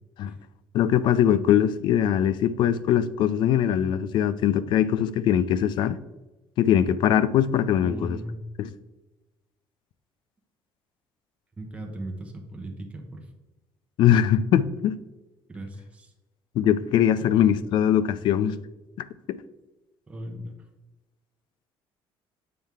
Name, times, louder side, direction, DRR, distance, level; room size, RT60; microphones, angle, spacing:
voice 1, 0.7-6.0 6.6-8.2 8.6-8.7 14.0-15.0 16.6-18.6 19.3-19.4, left 10 dB, 55° left, 0.4 m, -21 dB
voice 2, 7.8-8.4 11.6-13.3 15.5-16.1 20.1-20.5, right 1 dB, 15° right, 0.8 m, -37 dB
7.5 x 4.4 x 3.5 m
cardioid pair, 165°, 9 cm